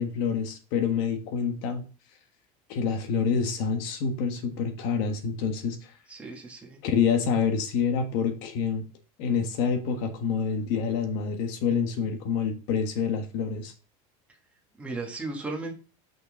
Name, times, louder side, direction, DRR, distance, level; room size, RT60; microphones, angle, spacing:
voice 1, 0.0-1.9 2.7-5.8 6.8-8.8 9.2-13.7, left 6 dB, 55° left, 1.5 m, -27 dB
voice 2, 6.1-6.8 14.8-15.7, right 3 dB, 5° right, 1.4 m, -35 dB
6.2 x 5.4 x 3.9 m
cardioid pair, 175°, 18 cm